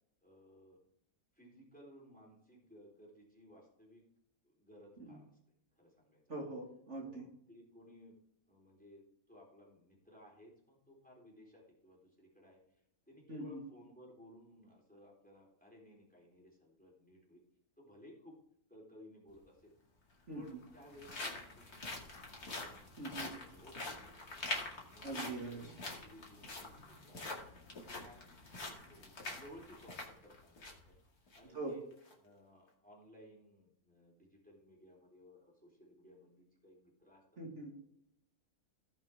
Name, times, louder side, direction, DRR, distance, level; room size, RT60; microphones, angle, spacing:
voice 1, 0.2-0.8 1.3-4.0 4.4-5.3 5.8-6.2 7.0-8.1 8.5-17.4 17.8-18.3 18.7-19.7 20.3-22.1 23.3-24.5 24.9-27.4 27.9-28.2 28.9-31.0 31.3-31.8 32.2-37.2, left 1 dB, 5° left, -2 dB, 3.7 m, -59 dB
voice 2, 6.3-7.3 13.3-13.6 20.3-20.4 23.0-23.3 25.0-25.7 31.5-31.8 37.4-37.7, right 2 dB, 50° right, -1 dB, 2.6 m, -43 dB
sound 1, 19.3-19.4 20.3-30.9 31.3-31.4 31.9-32.1, left 2 dB, 85° left, 2.8 m, -45 dB
17.5 x 6.0 x 3.5 m, 0.74 s
omnidirectional pair, 1.6 m